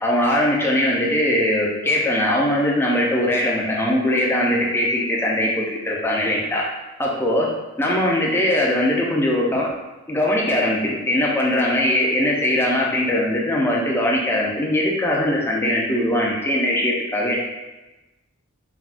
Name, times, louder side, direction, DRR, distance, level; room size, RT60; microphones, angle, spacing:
voice 1, 0.0-6.6 7.0-7.5 7.8-9.7 10.1-17.4, left 1 dB, 10° left, -3 dB, 0.4 m, -21 dB
3.4 x 2.2 x 2.4 m, 1.1 s
head